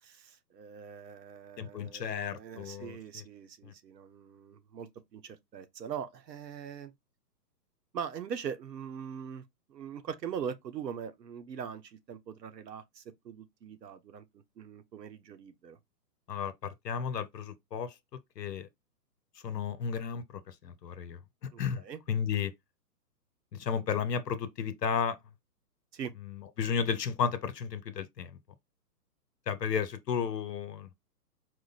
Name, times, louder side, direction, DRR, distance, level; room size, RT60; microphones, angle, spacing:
voice 1, 0.0-6.9 7.9-15.8 21.5-22.0 25.9-26.1, right 7 dB, 75° right, 1.0 m, -42 dB
voice 2, 1.6-3.2 3.6-3.7 16.3-17.9 18.4-18.7 19.4-22.5 23.5-25.2 26.2-28.4 29.5-30.9, left 7 dB, 75° left, 1.0 m, -33 dB
4.9 x 2.0 x 4.0 m
hypercardioid pair, 165°, 50 cm